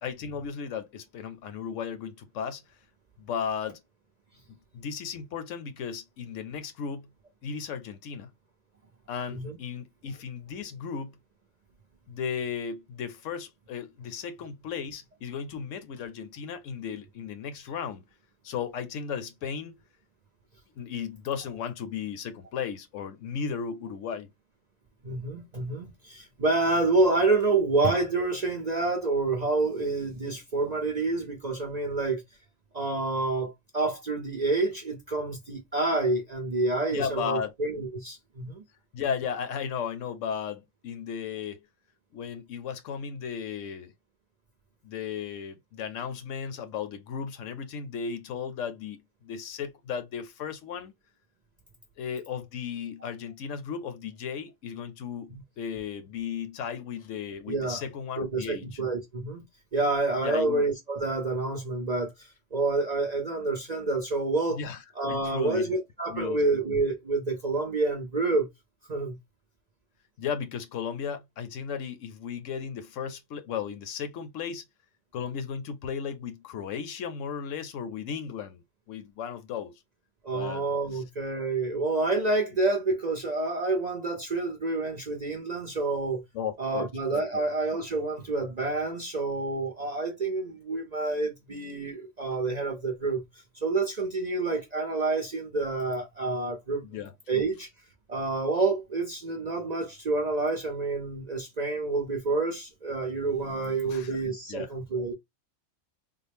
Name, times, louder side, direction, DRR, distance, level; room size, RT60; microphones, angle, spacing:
voice 1, 0.0-2.6 3.2-3.8 4.7-7.1 7.4-8.3 9.1-11.1 12.1-18.0 18.4-19.8 20.8-24.3 36.9-37.5 38.9-41.6 42.1-43.9 44.8-50.9 52.0-58.8 60.2-60.6 64.5-64.8 65.1-65.7 66.1-66.4 70.2-74.6 75.1-78.6 78.9-79.7 80.3-80.6 80.9-81.0 86.3-86.9 87.3-87.5 96.8-97.1 103.8-104.2 104.5-104.7, left 7 dB, 70° left, 1.0 m, -35 dB
voice 2, 25.0-32.2 32.7-38.6 55.3-55.4 57.5-57.8 58.2-59.4 59.7-64.6 65.0-68.5 68.9-69.2 80.2-86.2 86.6-93.2 93.6-96.8 97.3-97.7 98.1-105.1, right 3 dB, 45° right, 0.5 m, -28 dB
3.8 x 2.0 x 3.3 m
omnidirectional pair, 1.4 m